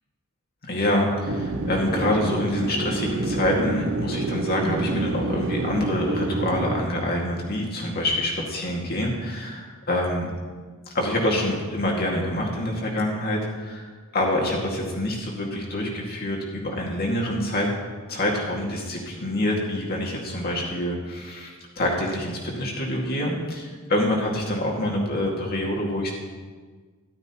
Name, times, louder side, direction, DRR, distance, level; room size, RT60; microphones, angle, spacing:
voice 1, 0.7-10.3 10.9-17.7 18.1-26.1, left 1 dB, 45° left, -1 dB, 2.1 m, -26 dB
sound 1, 1.3-6.8, right 2 dB, 65° right, 0.8 m, -27 dB
13.5 x 12.0 x 3.0 m, 1.5 s
head